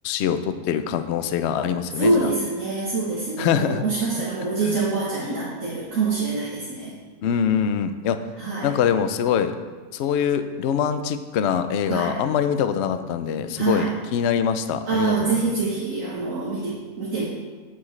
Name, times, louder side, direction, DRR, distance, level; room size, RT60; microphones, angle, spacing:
voice 1, 0.0-2.3 3.4-3.8 4.6-4.8 7.2-8.2 8.6-9.5 9.9-15.5, left 8 dB, 70° left, 10 dB, 0.6 m, -24 dB
voice 2, 2.0-6.9 8.4-8.7 11.9-12.2 13.6-13.9 14.9-17.3, right 3 dB, 60° right, -6 dB, 1.6 m, -25 dB
8.7 x 7.9 x 3.2 m, 1.4 s
omnidirectional pair, 1.6 m